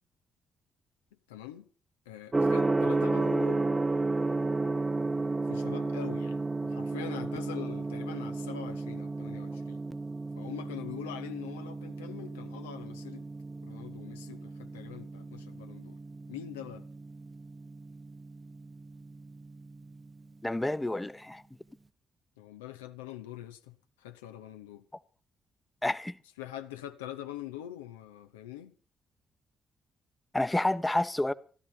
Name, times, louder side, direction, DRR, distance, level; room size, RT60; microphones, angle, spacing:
voice 1, 1.3-1.7 2.1-3.7 5.5-9.8 10.4-13.3 13.6-16.0 16.3-16.9 22.4-24.8 26.4-28.7, left 11 dB, 75° left, 0.8 m, -43 dB
Gong, 2.3-20.2, right 3 dB, 20° right, 0.8 m, -33 dB
voice 2, 20.4-21.4 25.8-26.2 30.3-31.3, left 1 dB, 15° left, 0.9 m, -29 dB
16.0 x 13.0 x 5.8 m
figure-of-eight pair, 40°, 0 cm